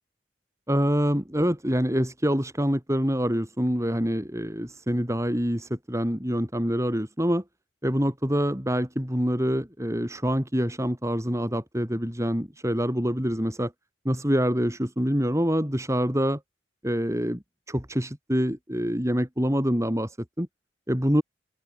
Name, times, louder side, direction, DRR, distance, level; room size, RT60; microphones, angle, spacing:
voice 1, 0.7-7.4 7.8-13.7 14.0-16.4 16.8-20.5 20.9-21.2, equal, 15° right, 5.0 m, -26 dB
open air
head